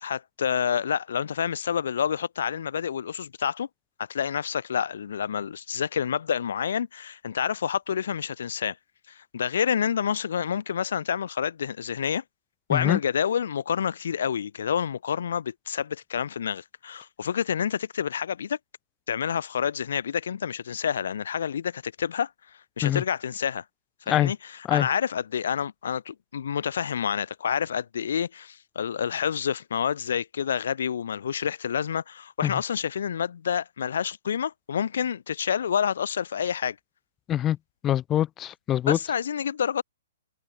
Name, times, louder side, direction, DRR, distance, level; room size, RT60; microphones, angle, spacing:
voice 1, 0.0-3.7 4.1-8.8 9.1-12.2 12.7-18.6 19.1-22.3 22.8-23.6 24.1-36.8 38.9-39.8, left 8 dB, 65° left, 2.6 m, -28 dB
voice 2, 37.8-39.0, left 11 dB, 20° left, 0.5 m, -24 dB
figure-of-eight pair, 120°, 0 cm